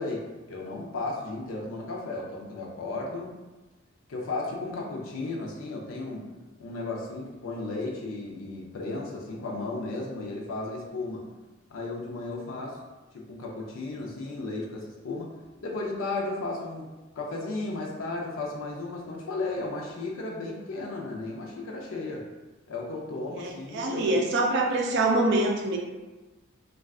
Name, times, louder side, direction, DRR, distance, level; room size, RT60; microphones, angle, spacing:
voice 1, 0.0-3.3 4.1-6.3 6.6-11.3 11.7-12.8 13.1-15.3 15.6-16.9 17.2-22.2 22.7-24.1, left 2 dB, 80° left, -2 dB, 0.5 m, -34 dB
voice 2, 23.3-25.8, right 2 dB, 60° right, 1 dB, 0.4 m, -25 dB
2.3 x 2.3 x 3.4 m, 1.2 s
head